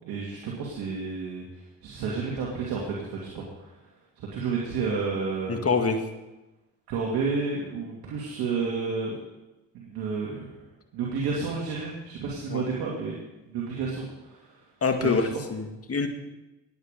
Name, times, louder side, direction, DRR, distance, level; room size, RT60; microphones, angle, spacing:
voice 1, 0.0-3.7 4.2-5.6 6.9-9.2 9.7-10.5 10.9-13.1 13.5-14.5 15.0-15.3, right 4 dB, 85° right, -4 dB, 2.5 m, -31 dB
voice 2, 5.5-6.0 12.5-12.6 14.8-16.1, left 4 dB, 40° left, 5 dB, 2.1 m, -25 dB
18.0 x 9.3 x 5.2 m, 1.0 s
supercardioid pair, 65°, 36 cm